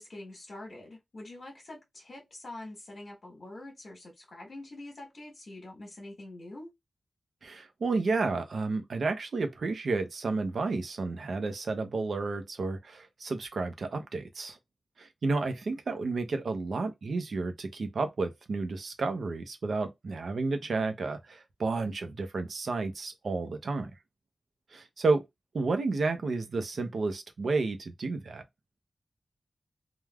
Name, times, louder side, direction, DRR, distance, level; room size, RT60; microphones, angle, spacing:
voice 1, 0.0-6.7, left 2 dB, 55° left, 1.2 m, -45 dB
voice 2, 7.4-14.6 15.0-23.9 24.7-25.2 25.5-28.4, right 3 dB, 80° right, 0.6 m, -31 dB
3.3 x 2.3 x 2.2 m
wide cardioid pair, 130°, 0 cm